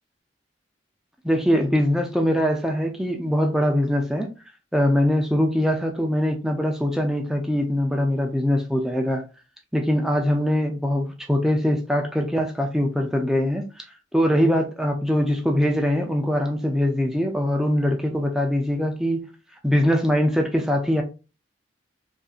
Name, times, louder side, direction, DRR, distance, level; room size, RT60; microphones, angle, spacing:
voice 1, 1.2-4.3 4.7-9.2 9.7-13.8 14.1-19.3 19.6-21.0, equal, 5° right, 0.5 m, -22 dB
5.1 x 2.7 x 2.4 m
head